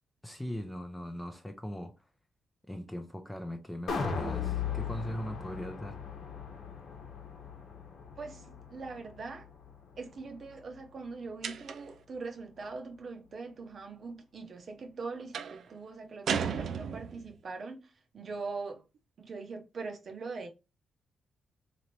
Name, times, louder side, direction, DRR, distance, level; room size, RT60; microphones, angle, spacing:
voice 1, 0.2-1.9 2.7-6.0, equal, 5° left, 0.5 m, -39 dB
sound 1, 3.9-10.1 10.5-10.6, left 6 dB, 65° left, 0.9 m, -38 dB
voice 2, 8.2-9.5 10.0-18.8 19.2-20.5, right 4 dB, 45° right, 0.8 m, -42 dB
sound 2, 11.4-12.0 15.3-15.6 16.3-17.3, right 7 dB, 65° right, 0.4 m, -34 dB
3.8 x 3.0 x 3.1 m
wide cardioid pair, 145°, 0 cm